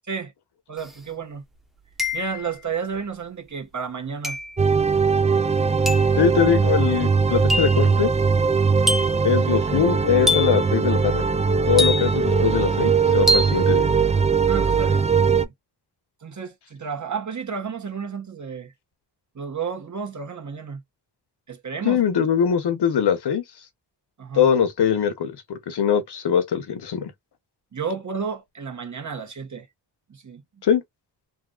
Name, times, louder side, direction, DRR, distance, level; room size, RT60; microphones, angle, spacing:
voice 1, 0.7-1.4 2.1-4.4 12.1-12.2 14.4-15.5 16.2-18.7 19.3-20.8 21.5-22.0 24.2-24.5 27.7-29.7 30.1-30.4, right 6 dB, 45° right, 1.5 m, -32 dB
sound 1, 0.8-0.9 2.0-2.5 4.2-4.6 5.9-6.2 7.5-7.8 8.9-9.3 10.3-10.7 11.8-12.3 13.3-13.6, left 1 dB, ahead, 1.0 m, -24 dB
sound 2, 4.6-15.5, right 5 dB, 20° right, 0.3 m, -20 dB
voice 2, 6.2-8.1 9.2-11.3 11.7-13.9 21.8-23.4 24.3-27.1 30.6-30.8, left 8 dB, 70° left, 1.0 m, -22 dB
3.6 x 2.6 x 2.3 m
cardioid pair, 85°, 42 cm